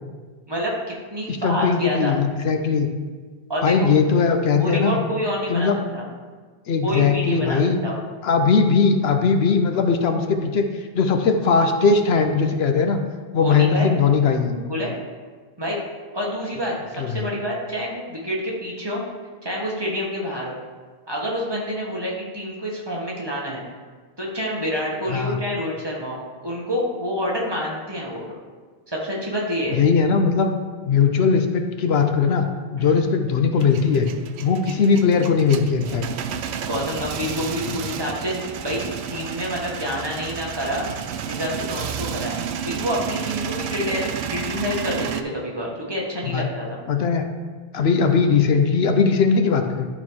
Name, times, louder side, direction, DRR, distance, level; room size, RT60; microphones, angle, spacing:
voice 1, 0.5-2.1 3.5-4.0 4.5-6.0 6.8-7.9 13.4-13.9 14.5-14.9 15.6-15.8 16.1-19.0 19.4-20.5 21.1-23.6 24.2-28.3 28.9-29.8 32.8-32.9 36.6-38.9 39.1-40.9 41.2-42.4 42.6-46.8, equal, 25° right, -4 dB, 1.5 m, -28 dB
voice 2, 1.3-2.9 3.6-5.0 5.5-5.8 6.7-7.8 8.2-10.7 10.9-13.0 13.3-14.5 17.0-17.3 25.1-25.4 29.7-30.5 30.9-32.5 32.7-34.1 34.4-36.0 37.7-37.8 46.3-46.5 46.9-47.2 47.7-49.9, left 5 dB, 75° left, 5 dB, 0.9 m, -19 dB
Male speech man speaking / Vehicle / Engine starting, 33.6-45.2, right 8 dB, 90° right, 0.8 m, -31 dB
11.5 x 3.9 x 4.7 m, 1.5 s
omnidirectional pair, 1.1 m